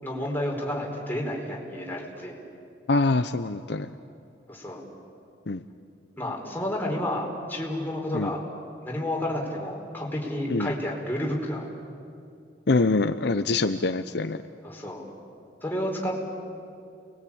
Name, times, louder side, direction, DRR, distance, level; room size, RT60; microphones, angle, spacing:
voice 1, 0.0-2.4 4.5-4.8 6.2-8.4 8.8-11.7 14.6-15.0 15.6-16.1, left 1 dB, 10° left, -2 dB, 4.8 m, -30 dB
voice 2, 2.9-3.9 5.5-5.6 8.1-8.3 10.5-10.7 12.7-14.4, left 3 dB, 65° left, 9 dB, 0.8 m, -24 dB
29.5 x 21.0 x 8.7 m, 2.5 s
head